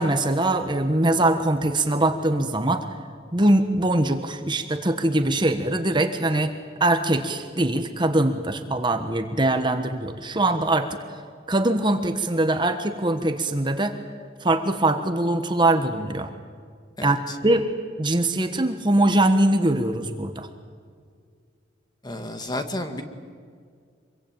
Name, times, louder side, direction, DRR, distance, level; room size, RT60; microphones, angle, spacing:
voice 1, 0.0-2.8 3.3-6.5 6.8-11.0 11.5-14.0 14.4-16.3 17.0-17.2 17.4-17.6 18.0-20.5, right 1 dB, 25° right, 7 dB, 1.3 m, -22 dB
voice 2, 17.0-17.4 22.0-23.0, left 1 dB, 20° left, 7 dB, 2.0 m, -31 dB
25.5 x 23.0 x 9.1 m, 2.1 s
head